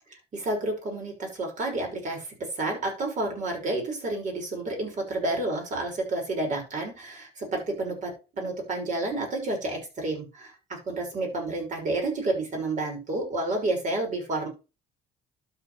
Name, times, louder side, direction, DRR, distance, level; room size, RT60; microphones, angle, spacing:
voice 1, 0.3-14.5, right 2 dB, 50° right, 1 dB, 6.1 m, -30 dB
12.5 x 7.4 x 3.4 m, 0.30 s
cardioid pair, 110°, 17 cm